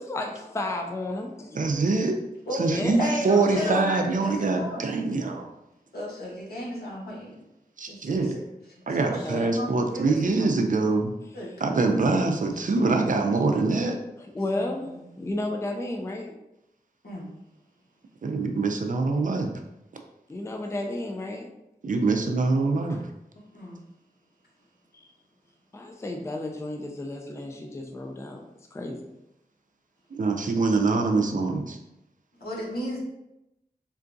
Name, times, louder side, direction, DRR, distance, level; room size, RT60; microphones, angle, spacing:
voice 1, 0.0-1.7 2.6-3.1 3.5-3.9 9.2-9.5 14.2-14.9 15.2-16.4 20.3-21.5 22.9-23.0 24.9-25.1 25.7-28.4 28.7-29.1, left 2 dB, 15° left, 3 dB, 0.3 m, -33 dB
voice 2, 1.5-2.2 2.6-5.5 7.8-8.4 8.9-11.1 11.6-14.0 18.2-19.5 21.8-23.0 30.1-31.8, right 3 dB, 55° right, 4 dB, 0.4 m, -24 dB
voice 3, 2.5-4.9 5.9-7.4 7.9-8.4 8.9-10.5 11.3-11.8 12.4-12.6 14.5-14.6 14.9-15.0 17.0-17.3 23.5-23.8 32.4-33.0, left 1 dB, 75° left, -5 dB, 1.1 m, -34 dB
3.7 x 2.3 x 2.5 m, 0.89 s
wide cardioid pair, 80°, 16 cm